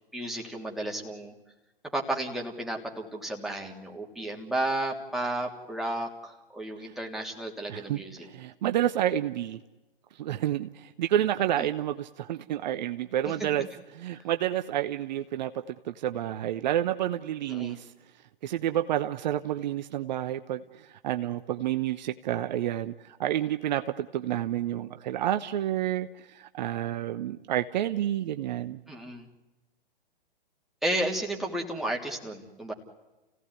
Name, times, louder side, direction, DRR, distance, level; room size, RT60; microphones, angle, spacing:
voice 1, 0.1-1.3 1.9-8.2 11.6-11.7 13.2-13.5 17.5-17.8 28.9-29.3 30.8-32.7, right 1 dB, ahead, 0 dB, 3.2 m, -33 dB
voice 2, 7.7-9.6 10.1-13.7 13.9-17.9 18.4-28.8, right 12 dB, 50° right, 10 dB, 1.0 m, -29 dB
30.0 x 17.0 x 9.8 m, 1.1 s
figure-of-eight pair, 120°, 29 cm